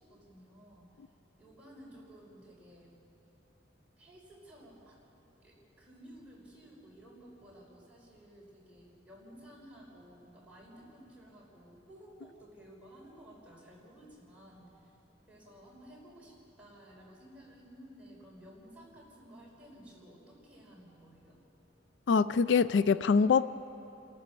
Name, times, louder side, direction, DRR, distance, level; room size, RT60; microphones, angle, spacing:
voice 1, 0.1-0.9 1.4-2.9 4.0-5.0 5.4-14.7 15.3-21.4, equal, 10° right, -5 dB, 5.8 m, -54 dB
voice 2, 22.1-23.4, left 5 dB, 70° left, 16 dB, 0.4 m, -24 dB
29.0 x 14.0 x 6.8 m, 2.9 s
head